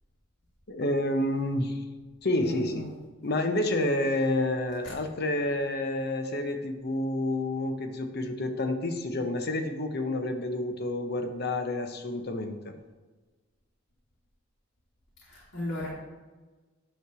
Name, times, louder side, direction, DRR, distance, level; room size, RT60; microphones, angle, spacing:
voice 1, 0.7-1.8 2.2-2.9 3.2-12.7, left 1 dB, 55° left, 6 dB, 0.9 m, -29 dB
voice 2, 2.4-2.9 15.3-15.9, left 1 dB, 80° left, -7 dB, 2.3 m, -35 dB
9.7 x 3.3 x 6.8 m, 1.3 s
head